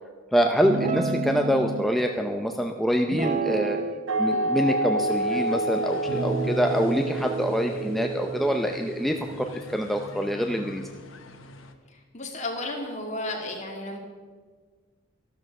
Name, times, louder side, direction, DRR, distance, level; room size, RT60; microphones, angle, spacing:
voice 1, 0.3-3.8 4.2-10.8, equal, ahead, 3 dB, 0.6 m, -25 dB
Guitar, 0.6-1.8 3.1-4.0 4.3-5.5 6.1-9.6, right 2 dB, 40° right, 0.7 m, -31 dB
sound 1, 4.1-9.5, right 2 dB, 85° right, 1.5 m, -29 dB
sound 2, 5.1-11.7, left 2 dB, 80° left, 1.2 m, -45 dB
voice 2, 11.9-14.0, left 2 dB, 35° left, 1 dB, 2.5 m, -33 dB
13.0 x 12.5 x 5.4 m, 1.5 s
head